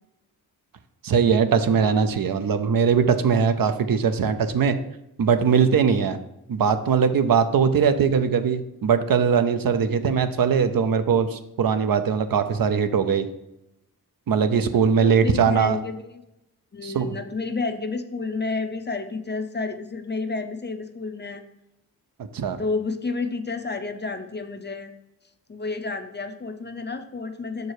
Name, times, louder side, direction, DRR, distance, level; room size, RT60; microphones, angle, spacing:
voice 1, 1.0-4.8 5.2-6.2 6.5-13.3 14.3-15.8 16.8-17.1 22.3-22.6, right 6 dB, 60° right, 10 dB, 0.6 m, -21 dB
voice 2, 14.7-16.2 16.7-21.4 22.6-24.9 25.5-27.7, left 4 dB, 30° left, 7 dB, 0.5 m, -30 dB
6.3 x 4.7 x 4.7 m, 0.86 s
wide cardioid pair, 95°, 38 cm